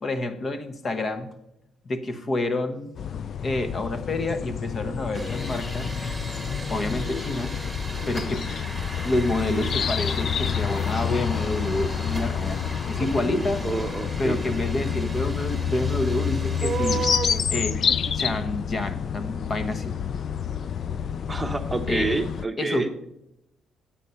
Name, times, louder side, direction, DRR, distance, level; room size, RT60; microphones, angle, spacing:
voice 1, 0.0-1.3 1.8-2.9 3.4-5.9 6.7-7.6 8.1-8.5 9.0-13.6 14.2-17.1 17.5-17.8 18.1-19.9 21.9-22.1 22.6-23.1, left 2 dB, 40° left, 1.0 m, -28 dB
sound 1, 3.0-22.5, left 7 dB, 55° left, 0.3 m, -28 dB
sound 2, 5.1-17.1, right 1 dB, ahead, 2.0 m, -38 dB
sound 3, 13.0-13.6 16.6-18.1, right 6 dB, 55° right, 0.5 m, -30 dB
voice 2, 13.6-14.4 21.3-22.9, right 3 dB, 15° right, 0.8 m, -28 dB
9.1 x 8.7 x 5.6 m
cardioid pair, 90°, 0 cm